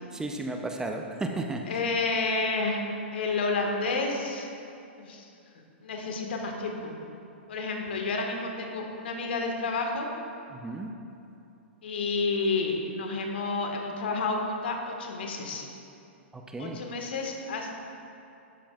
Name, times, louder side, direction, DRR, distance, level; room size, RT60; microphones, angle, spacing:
voice 1, 0.1-1.8 10.5-10.9 16.3-16.8, right 2 dB, 10° right, 3 dB, 0.7 m, -34 dB
voice 2, 1.7-2.8 3.1-4.5 5.0-5.2 5.8-6.9 7.5-10.1 11.8-15.6 16.6-17.8, left 3 dB, 65° left, 2 dB, 1.6 m, -30 dB
12.5 x 11.5 x 2.4 m, 2.7 s
figure-of-eight pair, 110°, 6 cm